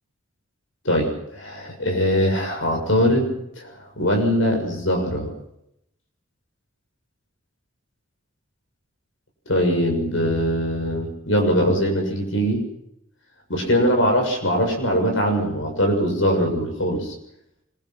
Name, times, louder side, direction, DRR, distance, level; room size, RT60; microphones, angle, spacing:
voice 1, 0.8-3.3 3.6-5.3 9.5-12.6 13.5-17.1, equal, 70° left, 2 dB, 6.8 m, -21 dB
25.0 x 23.0 x 6.0 m, 0.79 s
head